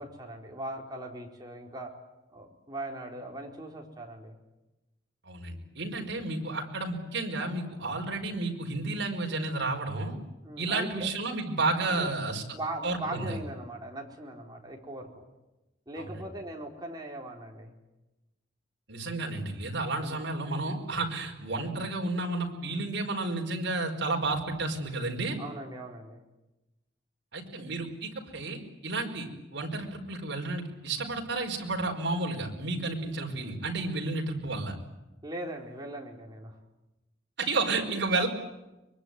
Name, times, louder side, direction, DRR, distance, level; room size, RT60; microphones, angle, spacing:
voice 1, 0.0-1.9 2.3-4.4 10.4-11.1 11.8-12.1 12.5-15.2 15.9-17.8 20.0-20.3 25.4-26.2 35.2-36.6, right 1 dB, 20° right, 0 dB, 4.2 m, -40 dB
voice 2, 5.2-10.1 10.6-12.4 12.8-13.4 16.0-16.1 18.9-25.4 27.3-34.7 37.4-38.3, right 2 dB, 60° right, 1 dB, 5.1 m, -31 dB
24.0 x 23.0 x 9.5 m, 1.0 s
head